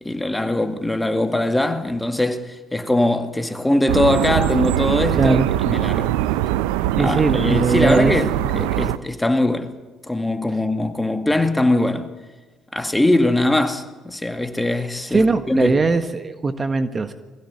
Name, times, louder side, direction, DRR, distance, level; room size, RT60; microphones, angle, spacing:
voice 1, 0.0-6.2 7.0-9.7 10.1-12.1 12.7-15.8, left 1 dB, 10° left, 2.3 m, -21 dB
sound 1, 3.9-9.0, right 14 dB, 80° right, 0.6 m, -22 dB
voice 2, 5.1-5.5 7.0-8.1 15.1-17.1, right 3 dB, 35° right, 1.5 m, -20 dB
21.5 x 16.0 x 9.8 m
hypercardioid pair, 60°, 0 cm